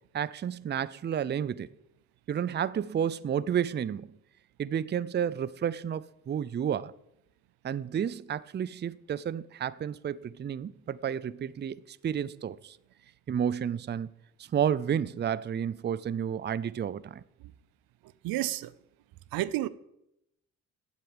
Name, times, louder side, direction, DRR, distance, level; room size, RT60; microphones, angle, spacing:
voice 1, 0.1-1.7 2.3-4.1 4.6-6.9 7.6-12.8 13.3-14.1 14.5-17.2, right 8 dB, 30° right, 0.5 m, -31 dB
voice 2, 18.2-18.7 19.3-19.7, right 15 dB, 85° right, 0.6 m, -30 dB
8.2 x 7.8 x 8.9 m
cardioid pair, 70°, 34 cm